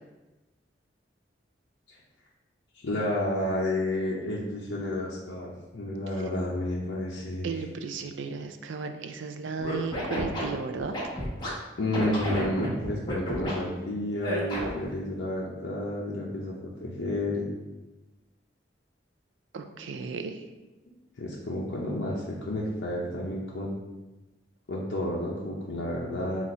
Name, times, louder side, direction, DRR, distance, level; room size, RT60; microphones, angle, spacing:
voice 1, 2.7-7.6 11.8-17.5 20.9-23.7 24.7-26.5, left 1 dB, 85° left, -5 dB, 0.6 m, -31 dB
voice 2, 7.4-10.9 14.0-14.2 19.5-20.4, right 5 dB, 90° right, 6 dB, 0.4 m, -35 dB
Scratching (performance technique), 9.6-11.5 11.9-13.5 14.2-14.9, equal, 25° left, 1.0 m, -31 dB
4.0 x 2.4 x 4.2 m, 1.1 s
head